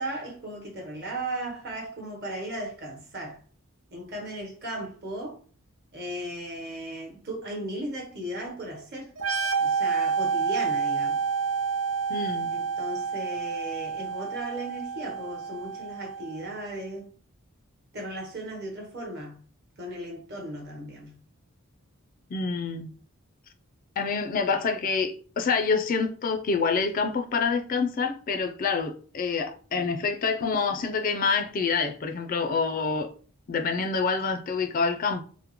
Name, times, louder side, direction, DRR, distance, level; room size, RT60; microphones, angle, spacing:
voice 1, 0.0-3.4 3.9-5.4 5.9-9.1 9.6-11.2 12.5-17.1 17.9-19.4 19.8-21.2, right 1 dB, 50° right, 1.1 m, -36 dB
sound 1, 9.2-16.7, right 5 dB, 80° right, 0.6 m, -29 dB
voice 2, 12.1-12.5 22.3-22.9 24.0-33.1 33.5-35.2, left 5 dB, 40° left, 0.3 m, -27 dB
3.6 x 2.0 x 2.9 m
head